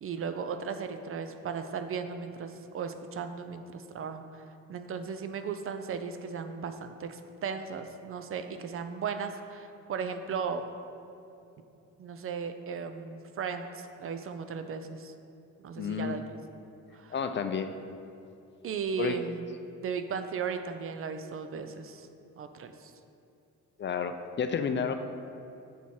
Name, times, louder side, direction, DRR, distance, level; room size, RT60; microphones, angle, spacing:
voice 1, 0.0-4.4 4.7-10.7 12.0-13.7 14.0-15.1 15.6-16.2 16.9-17.1 18.6-19.4 19.8-22.1 22.4-22.9, right 6 dB, 45° right, 8 dB, 0.5 m, -36 dB
voice 2, 15.8-16.2 17.1-17.7 19.0-19.2 23.8-24.9, left 6 dB, 40° left, 8 dB, 0.4 m, -31 dB
7.2 x 4.2 x 4.6 m, 2.6 s
cardioid pair, 90°, 30 cm